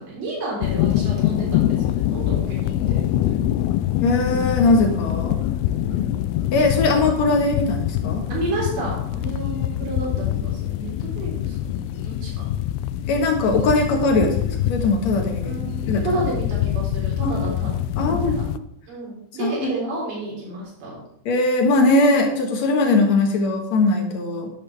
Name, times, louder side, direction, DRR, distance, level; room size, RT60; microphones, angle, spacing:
voice 1, 0.0-3.0 5.7-6.3 8.3-12.3 15.4-17.7 18.1-18.4 18.9-21.0, right 2 dB, 75° right, -6 dB, 5.9 m, -31 dB
sound 1, 0.6-18.6, left 12 dB, 85° left, 2.4 m, -24 dB
voice 2, 4.0-5.4 6.5-8.3 13.1-15.6 15.9-16.2 17.2-17.3 18.0-18.4 19.4-19.7 21.3-24.5, left 2 dB, 55° left, 2 dB, 2.3 m, -20 dB
11.0 x 10.5 x 3.4 m, 0.75 s
omnidirectional pair, 4.4 m